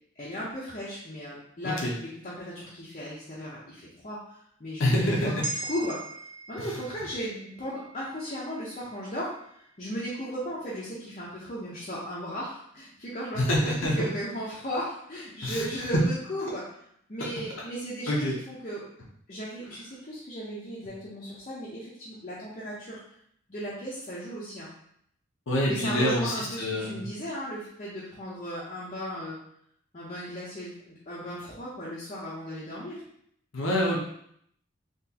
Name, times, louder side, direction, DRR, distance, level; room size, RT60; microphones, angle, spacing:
voice 1, 0.2-5.2 5.7-6.0 6.5-9.3 9.8-16.6 17.1-18.8 19.3-23.0 23.5-24.7 25.7-29.4 29.9-33.0, equal, 35° left, -8 dB, 0.7 m, -36 dB
voice 2, 4.8-5.4 6.6-6.8 13.3-14.1 15.4-15.9 18.1-18.3 25.5-27.0 33.5-34.0, left 1 dB, 75° left, -3 dB, 0.8 m, -26 dB
sound 1, 5.4-9.9 10.3-10.5, right 2 dB, 30° right, 0.4 m, -41 dB
3.9 x 2.9 x 2.8 m, 0.69 s
head